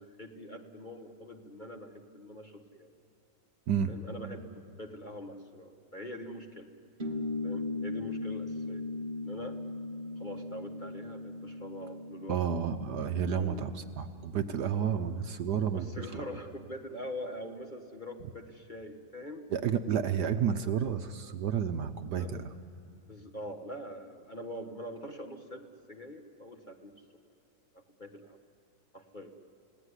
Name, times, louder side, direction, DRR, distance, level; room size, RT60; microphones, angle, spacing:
voice 1, 0.0-2.9 3.9-6.7 7.4-8.8 9.2-9.6 10.2-12.4 13.4-13.6 15.7-19.5 22.2-22.3 23.1-26.9 27.7-28.4 28.9-29.3, left 1 dB, 25° left, 3 dB, 1.4 m, -43 dB
voice 2, 3.7-4.0 12.3-15.9 19.5-22.5, right 7 dB, 65° right, 8 dB, 1.3 m, -31 dB
sound 1, 7.0-14.0, left 2 dB, 30° right, 1.1 m, -38 dB
30.0 x 17.5 x 9.8 m, 2.7 s
omnidirectional pair, 2.2 m